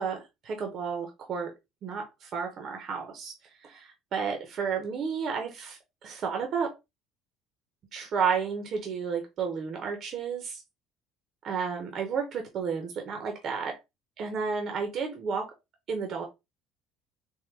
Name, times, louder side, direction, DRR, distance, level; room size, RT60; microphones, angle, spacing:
voice 1, 0.0-1.5 1.8-3.3 3.6-6.7 7.9-10.6 11.4-13.8 14.2-15.5 15.9-16.2, right 6 dB, 55° right, 0.9 m, -32 dB
3.7 x 2.1 x 3.2 m
supercardioid pair, 95°, 0 cm